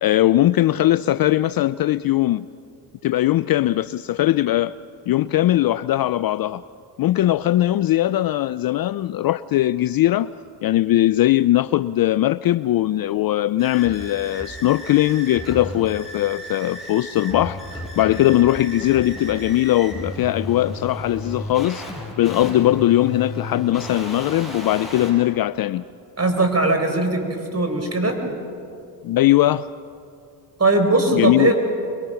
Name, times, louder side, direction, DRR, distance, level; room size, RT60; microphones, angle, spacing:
voice 1, 0.0-2.5 3.0-4.8 5.1-6.6 7.0-10.3 10.6-21.9 22.2-25.8 29.0-29.7 31.1-31.5, left 14 dB, 50° left, 0.5 m, -20 dB
sound 1, 13.6-25.1, left 1 dB, ahead, 7.8 m, -34 dB
voice 2, 26.2-28.2 30.6-31.5, right 2 dB, 30° right, 4.4 m, -19 dB
24.0 x 23.0 x 5.8 m
supercardioid pair, 60°, 50 cm